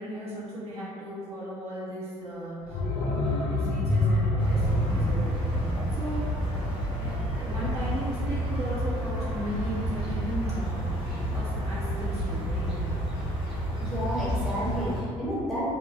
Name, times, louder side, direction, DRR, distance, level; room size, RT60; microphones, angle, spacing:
voice 1, 0.0-3.1 3.5-6.3 6.5-6.7 7.0-12.8, equal, 40° right, -9 dB, 0.6 m, -36 dB
sound 1, 2.7-7.4 7.7-7.8, left 1 dB, 50° left, 0.5 m, -28 dB
sound 2, 4.4-15.0, equal, 30° left, 1.1 m, -30 dB
voice 2, 13.8-15.7, equal, ahead, -9 dB, 0.9 m, -31 dB
2.7 x 2.2 x 2.2 m, 2.3 s
figure-of-eight pair, 50°, 16 cm